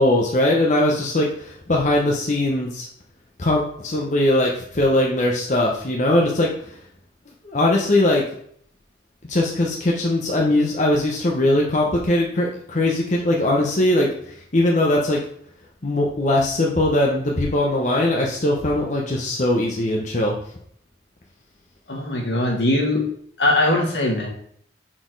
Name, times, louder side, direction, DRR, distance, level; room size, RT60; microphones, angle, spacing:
voice 1, 0.0-2.9 3.4-6.8 7.4-8.2 9.3-14.1 14.5-15.2 15.8-20.3, left 1 dB, 45° left, -1 dB, 0.9 m, -20 dB
voice 2, 21.9-23.1 23.4-24.3, left 1 dB, 75° left, 0 dB, 1.9 m, -20 dB
6.0 x 4.3 x 4.6 m, 0.64 s
head